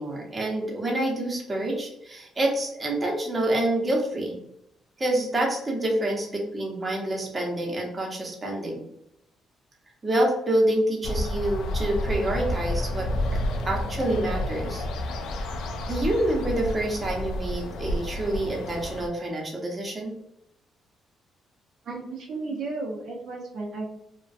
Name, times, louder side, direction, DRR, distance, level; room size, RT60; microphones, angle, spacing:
voice 1, 0.0-4.4 5.0-8.8 10.0-13.1 13.6-14.8 15.9-20.1, right 1 dB, 30° right, -1 dB, 0.8 m, -27 dB
sound 1, 11.0-19.1, left 1 dB, 85° left, 0.3 m, -30 dB
voice 2, 21.8-23.9, right 3 dB, 70° right, -2 dB, 0.6 m, -33 dB
2.4 x 2.2 x 2.3 m, 0.80 s
cardioid pair, 90°, 0 cm